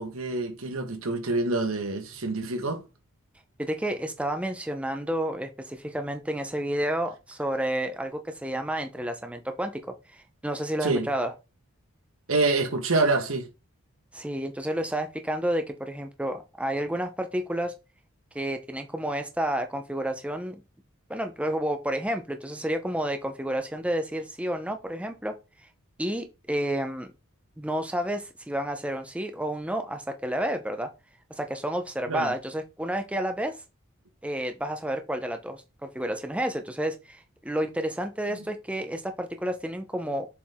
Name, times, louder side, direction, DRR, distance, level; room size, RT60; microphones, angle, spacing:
voice 1, 0.0-2.8 10.8-11.1 12.3-13.5 32.1-32.3, right 3 dB, 80° right, 1.6 m, -26 dB
voice 2, 3.6-9.8 10.1-11.3 14.1-17.7 18.3-20.6 21.1-25.3 26.0-27.1 27.6-30.9 31.3-33.6 34.2-40.3, right 1 dB, 5° right, 0.7 m, -30 dB
7.2 x 4.7 x 3.6 m
head